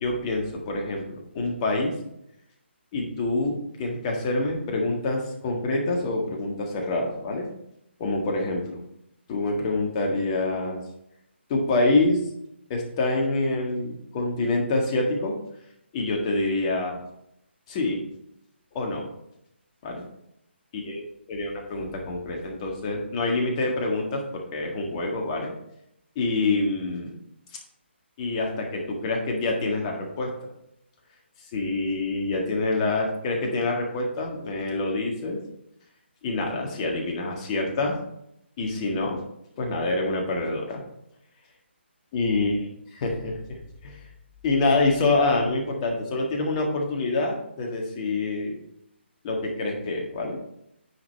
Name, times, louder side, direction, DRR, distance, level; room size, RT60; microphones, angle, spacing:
voice 1, 0.0-1.9 2.9-7.5 8.0-8.8 9.3-10.8 11.5-12.2 12.7-15.4 15.9-17.0 17.7-18.0 18.7-19.1 19.8-20.0 20.7-21.0 21.3-25.5 26.1-27.1 28.2-30.3 31.5-35.4 36.2-38.0 38.6-39.2 39.6-40.8 42.1-42.5 42.9-43.6 43.8-44.0 44.4-48.6 49.2-50.4, left 2 dB, 25° left, 1 dB, 1.7 m, -26 dB
9.6 x 5.2 x 4.2 m, 0.78 s
figure-of-eight pair, 145°, 6 cm